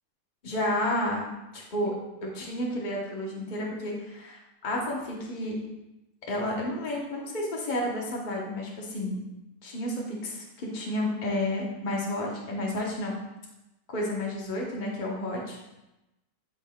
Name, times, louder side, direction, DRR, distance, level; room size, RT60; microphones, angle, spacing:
voice 1, 0.4-1.3 1.5-1.9 2.2-5.5 6.3-9.2 9.6-13.2 13.9-15.6, left 1 dB, 35° left, -2 dB, 1.2 m, -31 dB
11.0 x 3.9 x 2.3 m, 0.97 s
omnidirectional pair, 1.6 m